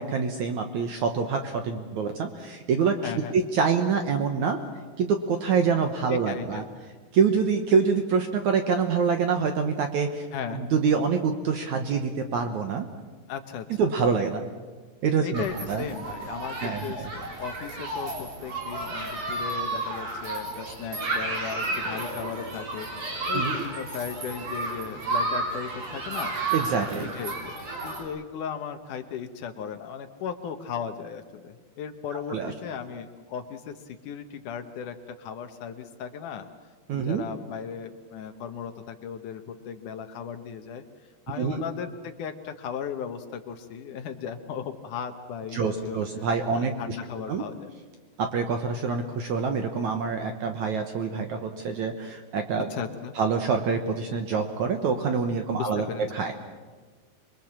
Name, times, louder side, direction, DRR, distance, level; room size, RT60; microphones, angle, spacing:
voice 1, 0.0-4.6 5.0-6.6 7.1-12.9 13.8-14.4 15.0-15.8 16.6-17.1 23.3-23.5 26.5-27.1 32.3-32.5 36.9-37.2 41.4-41.6 45.5-47.0 47.3-47.4 48.2-52.7 53.2-55.9 56.1-56.3, right 5 dB, 65° right, 6 dB, 1.9 m, -26 dB
voice 2, 3.0-3.4 6.1-6.7 10.3-10.6 13.3-13.8 15.2-22.9 23.3-26.4 27.0-27.6 27.8-36.5 36.9-40.8 41.3-46.0 46.6-47.7 52.7-53.1 55.6-56.0, left 7 dB, 70° left, 7 dB, 2.1 m, -36 dB
Human group actions, 15.3-28.0, right 2 dB, 50° right, 5.3 m, -32 dB
27.0 x 22.0 x 7.4 m, 1.4 s
omnidirectional pair, 4.8 m